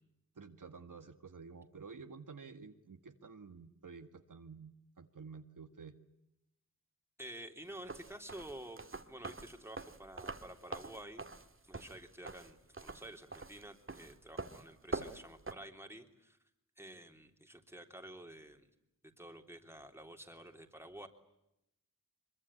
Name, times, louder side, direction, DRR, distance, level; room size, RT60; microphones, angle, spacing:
voice 1, 0.4-6.0 14.9-15.2, right 5 dB, 70° right, 7 dB, 1.9 m, -51 dB
voice 2, 7.2-11.2 11.7-16.4 16.8-18.7 19.2-21.1, right 1 dB, 5° right, 4 dB, 3.4 m, -50 dB
sound 1, 7.8-15.5, right 3 dB, 40° right, 2.1 m, -45 dB
25.0 x 23.0 x 10.0 m, 0.85 s
wide cardioid pair, 100°, 33 cm